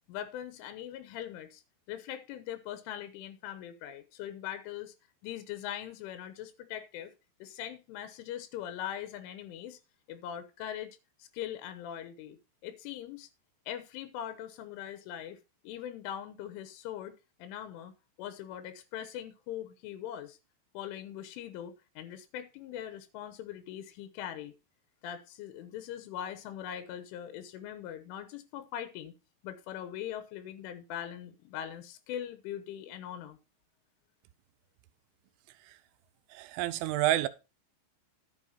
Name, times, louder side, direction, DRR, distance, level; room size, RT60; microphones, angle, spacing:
voice 1, 0.1-1.6 1.9-4.9 5.2-7.1 7.4-9.8 10.1-13.3 13.7-15.4 15.6-17.9 18.2-20.4 20.8-24.6 25.0-29.1 29.4-33.4, left 10 dB, 90° left, 3.5 m, -41 dB
voice 2, 36.3-37.3, right 15 dB, 85° right, 3.2 m, -28 dB
11.5 x 7.4 x 4.2 m
omnidirectional pair, 5.5 m